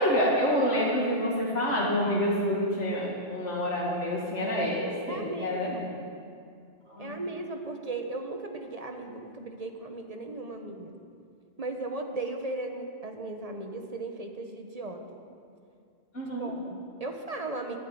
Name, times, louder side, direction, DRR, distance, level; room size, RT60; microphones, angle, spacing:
voice 1, 0.0-5.9 6.9-7.2 16.1-16.5, equal, 80° left, -6 dB, 2.6 m, -27 dB
voice 2, 5.1-5.9 7.0-11.0 11.6-15.2 16.4-17.8, right 2 dB, 35° right, 4 dB, 1.4 m, -37 dB
13.0 x 9.4 x 8.9 m, 2.3 s
omnidirectional pair, 1.2 m